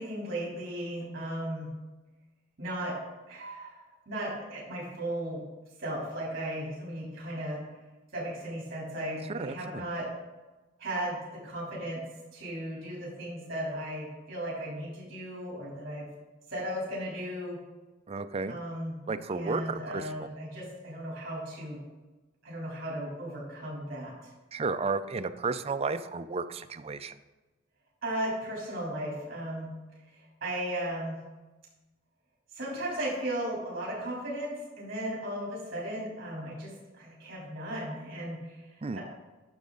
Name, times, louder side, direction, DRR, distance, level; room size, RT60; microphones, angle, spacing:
voice 1, 0.0-1.7 2.6-3.0 3.3-3.8 4.0-5.4 5.8-7.6 8.1-10.1 10.8-12.0 12.3-16.0 16.5-17.6 18.5-18.9 19.3-21.8 22.4-24.3 28.0-29.7 30.4-31.2 32.5-38.6 38.9-39.0, right 1 dB, 50° right, -5 dB, 3.4 m, -36 dB
voice 2, 9.3-9.8 18.1-18.6 19.1-20.3 24.5-27.2 38.8-39.0, right 4 dB, 30° right, 10 dB, 0.4 m, -33 dB
12.0 x 6.3 x 3.9 m, 1.2 s
head